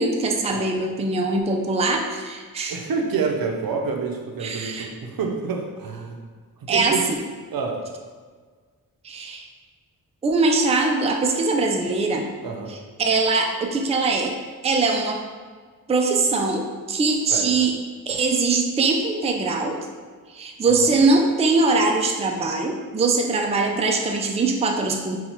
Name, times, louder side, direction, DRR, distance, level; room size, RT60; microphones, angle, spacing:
voice 1, 0.0-2.8 4.4-4.9 6.7-7.2 9.0-9.5 10.2-12.3 12.7-14.3 14.6-15.2 15.9-17.7 18.1-19.8 20.3-25.2, right 3 dB, 20° right, 2 dB, 0.4 m, -22 dB
voice 2, 2.7-6.2 6.6-7.0 7.5-7.8 12.4-12.7 17.3-17.5 20.7-20.9, right 5 dB, 70° right, 2 dB, 0.6 m, -28 dB
5.4 x 2.3 x 3.0 m, 1.5 s
wide cardioid pair, 85°, 36 cm